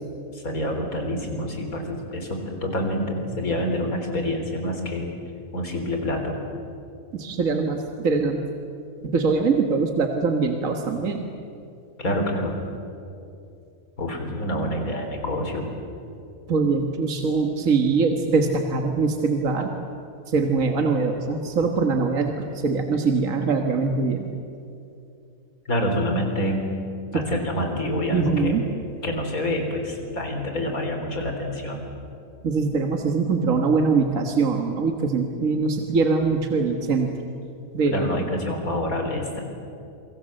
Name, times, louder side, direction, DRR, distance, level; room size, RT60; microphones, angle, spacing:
voice 1, 0.3-5.1 5.5-6.4 12.0-12.6 14.0-15.7 25.7-26.7 27.1-28.6 29.0-31.9 37.9-39.4, left 1 dB, 85° left, 3 dB, 4.3 m, -27 dB
voice 2, 7.1-8.4 9.0-11.3 16.5-19.7 20.3-24.3 27.1-27.2 28.1-28.6 32.4-37.1 37.7-38.3, right 4 dB, 70° right, 4 dB, 1.9 m, -23 dB
28.0 x 23.5 x 7.8 m, 2.6 s
omnidirectional pair, 1.5 m